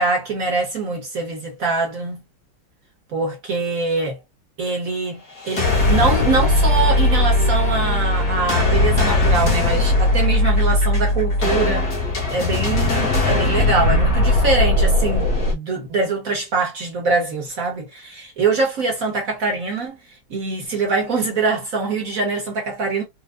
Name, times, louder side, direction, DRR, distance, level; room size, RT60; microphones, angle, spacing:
voice 1, 0.0-2.2 3.1-4.2 4.6-5.2 5.5-11.9 12.3-20.0 20.3-23.0, right 4 dB, 55° right, 1.0 m, -23 dB
sound 1, 5.4-15.5, left 2 dB, 45° left, 1.6 m, -18 dB
4.4 x 2.3 x 2.4 m
omnidirectional pair, 2.3 m